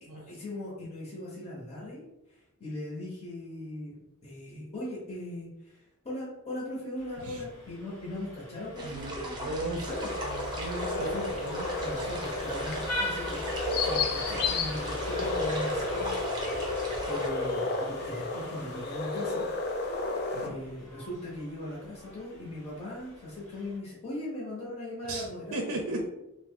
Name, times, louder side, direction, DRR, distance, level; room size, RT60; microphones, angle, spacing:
voice 1, 0.0-4.0 4.2-10.2 11.0-11.4 11.8-16.1 16.7-19.5 20.4-26.0, left 1 dB, 30° left, -6 dB, 0.8 m, -39 dB
Vehicle horn car horn honking, 7.0-23.8, left 1 dB, 65° left, 1.0 m, -42 dB
sound 1, 8.8-17.3, right 1 dB, 20° right, 0.6 m, -38 dB
voice 2, 8.8-9.9 10.2-11.7 11.9-12.1 20.3-20.6 25.1-25.2 25.5-26.0, right 2 dB, 65° right, 2 dB, 0.4 m, -36 dB
sound 2, 9.9-20.5, left 3 dB, 45° left, 0.4 m, -32 dB
2.9 x 2.0 x 3.5 m, 0.92 s
head